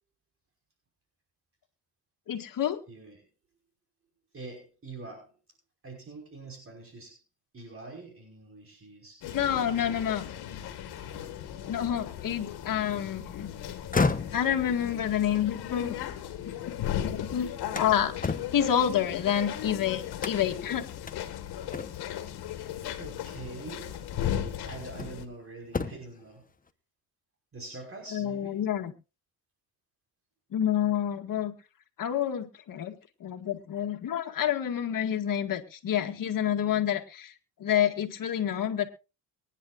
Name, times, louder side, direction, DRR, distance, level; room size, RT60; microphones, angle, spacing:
voice 1, 2.3-2.8 9.3-10.3 11.7-13.5 14.3-16.0 16.7-20.8 28.1-28.9 30.5-31.5 32.0-37.3 37.6-38.9, left 9 dB, 55° left, 5 dB, 2.1 m, -28 dB
voice 2, 2.9-3.2 4.3-5.4 5.8-7.2 7.5-9.7 11.1-11.4 23.0-26.5 27.5-28.6, right 3 dB, 35° right, 1 dB, 5.4 m, -45 dB
sound 1, 9.2-25.2, left 10 dB, 85° left, 2.0 m, -37 dB
sound 2, 13.8-16.8 17.2-19.6 20.2-20.7 21.1-21.2 21.7-22.2 23.5-23.6 24.2-25.3 25.6-26.2, left 4 dB, 20° left, 1.2 m, -33 dB
23.5 x 10.5 x 2.6 m, 0.31 s
cardioid pair, 90°, 38 cm